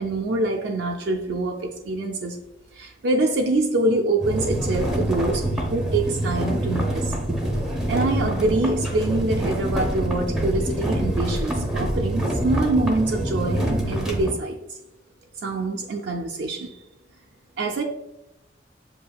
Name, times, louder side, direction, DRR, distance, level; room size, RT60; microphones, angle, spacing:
voice 1, 0.0-2.4 2.7-7.1 7.9-14.6 15.4-16.8 17.6-17.8, right 2 dB, 65° right, 0.4 m, -25 dB
sound 1, 4.2-14.3, right 1 dB, 5° right, 0.6 m, -25 dB
7.3 x 2.7 x 2.2 m
head